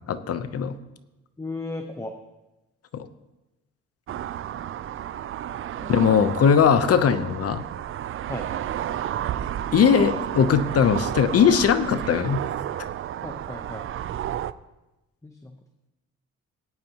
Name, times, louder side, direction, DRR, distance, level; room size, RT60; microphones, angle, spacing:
voice 1, 0.1-0.8 2.9-3.1 5.9-7.6 9.7-12.4, left 7 dB, 50° left, 11 dB, 0.8 m, -20 dB
voice 2, 1.4-2.1 8.3-8.5 13.2-13.9 15.2-15.6, left 2 dB, 10° left, 5 dB, 0.8 m, -36 dB
sound 1, 4.1-14.5, right 11 dB, 45° right, 0.4 m, -31 dB
18.5 x 8.9 x 2.9 m, 1.0 s
cardioid pair, 90°, 30 cm